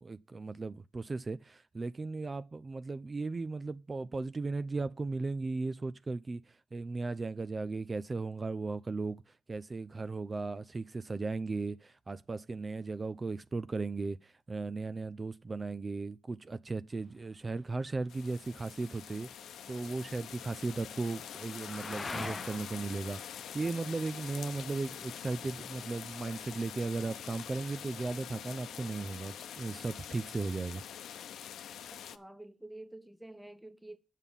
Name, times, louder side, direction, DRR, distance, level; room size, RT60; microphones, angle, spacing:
voice 1, 0.0-9.2 9.5-30.8, right 3 dB, 40° right, 0.5 m, -36 dB
sound 1, 16.9-26.8, left 3 dB, 35° left, 0.7 m, -48 dB
sound 2, 18.1-32.2, left 9 dB, 90° left, 0.7 m, -45 dB
voice 2, 31.9-34.0, right 1 dB, 5° right, 1.3 m, -49 dB
8.1 x 7.4 x 5.4 m
cardioid pair, 60°, 0 cm